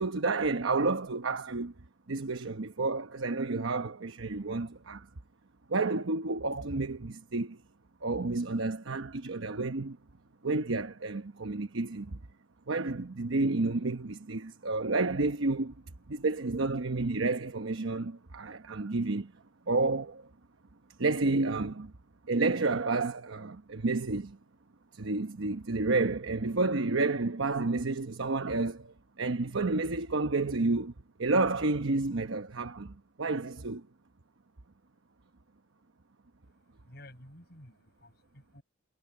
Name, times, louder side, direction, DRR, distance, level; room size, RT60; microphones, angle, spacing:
voice 1, 0.0-1.7 2.1-5.1 5.7-7.6 8.0-10.0 10.4-12.2 12.7-15.8 16.1-19.3 19.7-20.3 21.0-21.9 22.3-24.4 24.9-30.9 31.2-33.8, right 3 dB, 85° right, 1.0 m, -30 dB
voice 2, 36.4-38.6, left 1 dB, 55° left, 7.9 m, -53 dB
head